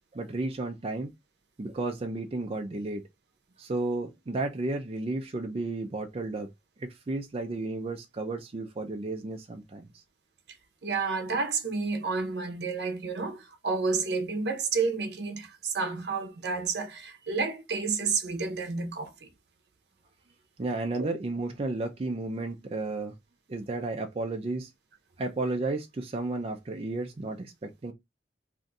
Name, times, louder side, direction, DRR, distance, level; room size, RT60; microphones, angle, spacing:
voice 1, 0.1-1.1 1.6-3.0 3.6-6.5 6.8-10.0 20.6-23.1 23.5-24.7 25.2-27.9, right 2 dB, 35° right, 0.4 m, -33 dB
voice 2, 10.8-19.3 21.0-21.1, right 4 dB, 65° right, 0.7 m, -30 dB
2.5 x 2.3 x 3.9 m
head